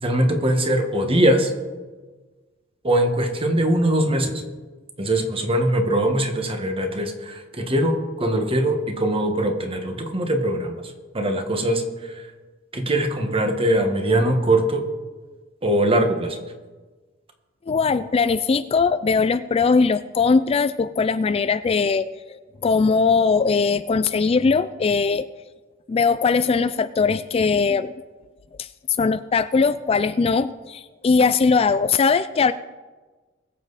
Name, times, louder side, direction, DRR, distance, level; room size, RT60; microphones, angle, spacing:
voice 1, 0.0-1.5 2.8-4.4 5.0-10.8 11.1-11.8 12.7-14.8 15.6-16.4, right 1 dB, 30° right, 4 dB, 1.4 m, -21 dB
voice 2, 17.7-25.3 25.9-27.9 28.6-28.7 29.0-32.5, left 4 dB, 30° left, 13 dB, 0.3 m, -20 dB
21.5 x 7.5 x 4.1 m, 1.3 s
head